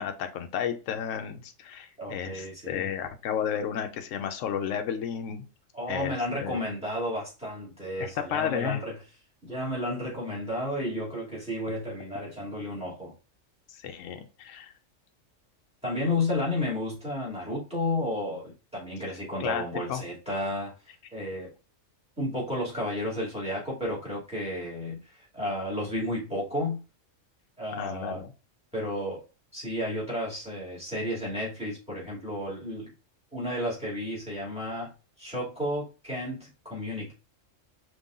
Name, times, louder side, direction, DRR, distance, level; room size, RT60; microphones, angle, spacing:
voice 1, 0.0-5.4 5.9-6.1 6.4-6.6 8.0-8.8 13.7-14.7 19.4-20.0 27.7-28.3, left 8 dB, 80° left, 1.0 m, -32 dB
voice 2, 2.0-2.9 5.7-8.9 9.4-13.1 15.8-20.7 21.1-21.5 22.2-26.8 27.6-28.2 28.7-29.2 29.5-32.9 33.3-34.9 35.2-37.1, left 1 dB, 5° right, 2.5 m, -32 dB
5.3 x 3.3 x 2.4 m
omnidirectional pair, 1.3 m